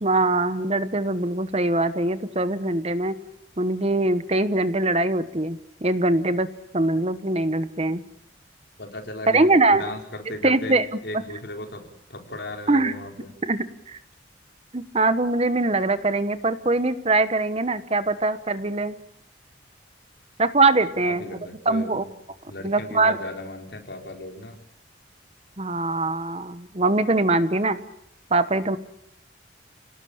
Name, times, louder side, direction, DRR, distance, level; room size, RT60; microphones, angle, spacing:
voice 1, 0.0-3.1 3.6-6.5 6.7-8.0 9.3-9.8 10.4-10.9 12.7-12.9 13.4-14.0 14.7-19.0 20.4-21.3 21.6-22.0 22.6-23.2 25.6-27.8 28.3-28.8, right 2 dB, 35° right, 13 dB, 1.1 m, -22 dB
voice 2, 8.8-11.8 12.1-13.3 21.0-22.1 22.5-24.6, left 1 dB, 60° left, 3 dB, 4.5 m, -36 dB
28.5 x 18.5 x 8.8 m, 0.76 s
head